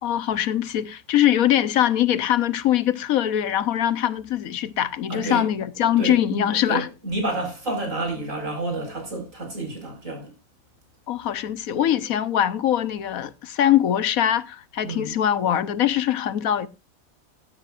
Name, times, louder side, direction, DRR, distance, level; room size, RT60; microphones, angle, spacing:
voice 1, 0.0-6.9 11.1-16.7, left 11 dB, 80° left, 1.3 m, -22 dB
voice 2, 5.1-5.5 6.0-10.3 14.8-15.2, right 2 dB, 65° right, 5.4 m, -30 dB
16.5 x 10.5 x 2.4 m
omnidirectional pair, 1.5 m